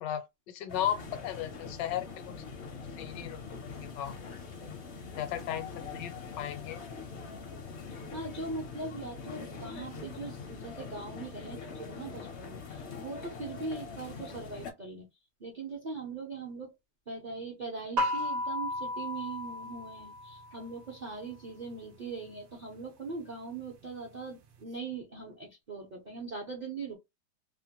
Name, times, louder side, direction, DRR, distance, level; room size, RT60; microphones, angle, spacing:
voice 1, 0.0-2.3 3.0-4.3 5.1-6.8, left 10 dB, 80° left, 1.2 m, -36 dB
sound 1, 0.7-14.7, left 5 dB, 60° left, 0.7 m, -43 dB
voice 2, 8.1-15.1 15.4-16.7 17.1-27.0, right 3 dB, 55° right, 0.5 m, -41 dB
sound 2, 18.0-20.7, left 1 dB, 70° right, 0.8 m, -34 dB
3.0 x 2.2 x 2.8 m
omnidirectional pair, 2.0 m